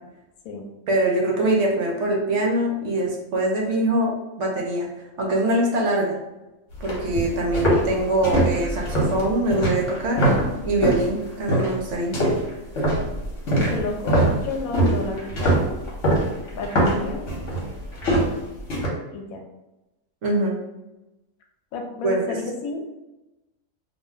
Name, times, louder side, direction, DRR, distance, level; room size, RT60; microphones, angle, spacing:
voice 1, 0.9-4.1 4.4-4.9 5.2-6.2 6.8-10.2 10.6-12.1 20.2-20.6 22.0-22.4, right 1 dB, 65° right, 0 dB, 0.9 m, -23 dB
sound 1, 6.7-11.1 11.5-11.8 12.1-18.9, right 1 dB, 65° left, 1.2 m, -23 dB
voice 2, 13.7-15.7 16.5-17.3 19.1-19.4 21.7-22.9, left 3 dB, 85° left, 3 dB, 1.0 m, -31 dB
2.5 x 2.1 x 3.6 m, 1.0 s
omnidirectional pair, 1.5 m